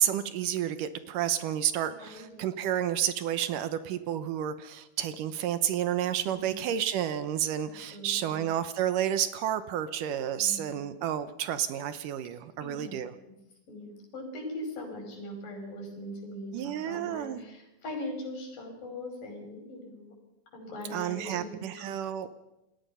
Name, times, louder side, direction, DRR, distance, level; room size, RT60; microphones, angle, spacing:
voice 1, 0.0-13.1 16.5-17.4 20.9-22.3, right 10 dB, 75° right, 12 dB, 2.3 m, -30 dB
voice 2, 2.0-2.4 6.3-6.6 7.6-8.5 10.4-10.8 12.6-13.1 13.7-20.1 20.5-22.0, left 1 dB, 70° left, 2 dB, 7.0 m, -41 dB
29.0 x 19.5 x 5.6 m, 0.94 s
omnidirectional pair, 4.1 m